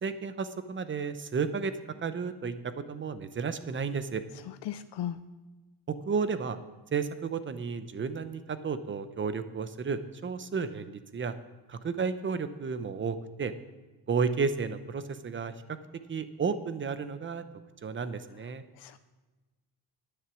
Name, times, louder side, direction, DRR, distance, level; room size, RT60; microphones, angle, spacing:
voice 1, 0.0-1.7 2.0-4.2 5.9-6.6 6.9-11.4 11.7-13.5 14.1-15.8 16.1-17.4 17.8-18.6, right 5 dB, 30° right, 11 dB, 0.7 m, -32 dB
voice 2, 4.7-5.2 18.8-19.0, left 11 dB, 70° left, 11 dB, 0.6 m, -35 dB
11.0 x 10.0 x 6.1 m, 1.2 s
cardioid pair, 150°, 43 cm